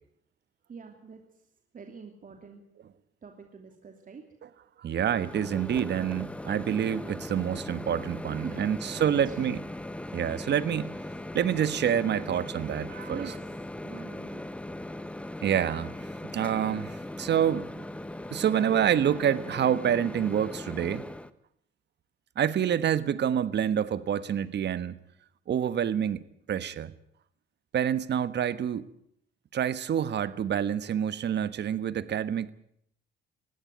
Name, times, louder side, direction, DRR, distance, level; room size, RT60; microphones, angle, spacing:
voice 1, 0.7-1.2 1.7-2.6 3.2-4.2 8.4-9.5 13.1-13.5 13.8-14.4, right 5 dB, 45° right, 4 dB, 2.8 m, -44 dB
voice 2, 4.8-9.6 10.1-10.9 11.3-13.3 15.4-15.9 16.2-17.8 18.3-21.0 22.4-25.0 25.5-26.2 26.5-26.9 27.7-28.9 29.5-32.5, right 9 dB, 60° right, 14 dB, 1.4 m, -27 dB
Microwave oven, 5.0-21.3, left 1 dB, 5° left, 1.2 m, -39 dB
20.5 x 16.0 x 9.2 m, 0.71 s
cardioid pair, 90°, 20 cm